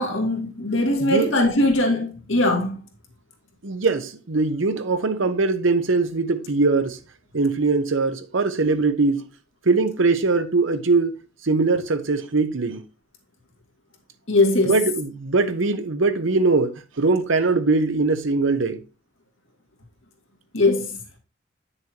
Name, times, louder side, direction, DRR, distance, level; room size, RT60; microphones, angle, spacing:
voice 1, 0.0-2.8 14.3-14.8 20.5-21.0, left 2 dB, 80° left, 2.2 m, -21 dB
voice 2, 3.6-7.0 7.3-9.3 9.7-11.1 11.4-12.8 14.7-18.8, right 3 dB, 75° right, 0.9 m, -21 dB
8.7 x 6.8 x 2.9 m
head